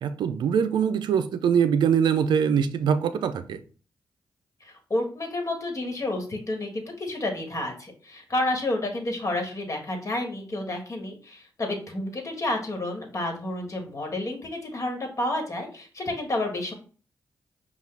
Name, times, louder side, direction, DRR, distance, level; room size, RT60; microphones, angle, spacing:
voice 1, 0.0-3.6, right 7 dB, 80° right, 0.4 m, -23 dB
voice 2, 4.6-16.7, left 1 dB, 45° left, 1.4 m, -30 dB
5.6 x 2.3 x 3.3 m
supercardioid pair, 50°, 8 cm